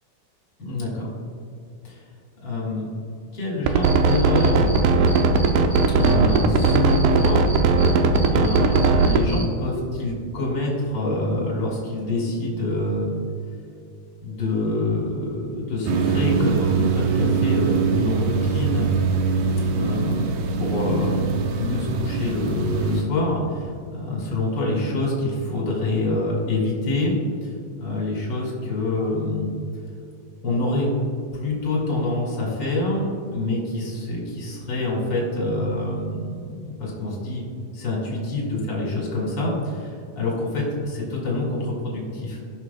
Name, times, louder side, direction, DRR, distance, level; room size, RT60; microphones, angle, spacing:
voice 1, 0.6-1.0 1.8-2.0 2.4-2.9 3.3-4.7 5.9-7.4 8.2-13.1 14.2-18.9 19.7-20.2 20.5-21.3 21.6-27.5 27.8-29.5 30.4-30.9 31.3-37.4 37.7-42.4, left 2 dB, 35° left, -3 dB, 2.2 m, -26 dB
sound 1, 3.7-9.2, right 4 dB, 90° right, 1.7 m, -18 dB
Cricket, 3.8-4.8 5.1-9.4, equal, 30° right, 1.2 m, -36 dB
sound 2, 15.9-23.0, right 5 dB, 75° right, 1.9 m, -23 dB
17.5 x 6.2 x 2.3 m, 2.5 s
omnidirectional pair, 4.4 m